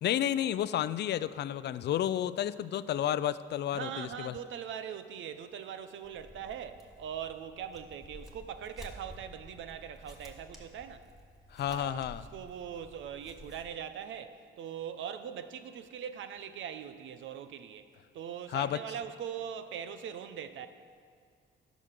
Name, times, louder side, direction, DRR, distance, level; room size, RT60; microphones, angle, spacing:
voice 1, 0.0-4.3 11.5-12.2 18.5-18.8, left 11 dB, 60° left, 15 dB, 0.4 m, -31 dB
voice 2, 3.7-11.1 11.7-17.9 18.1-20.7, right 8 dB, 75° right, 10 dB, 0.8 m, -41 dB
sound 1, 6.0-13.6, left 1 dB, ahead, 1.9 m, -52 dB
11.0 x 6.3 x 6.7 m, 2.2 s
cardioid pair, 90°, 20 cm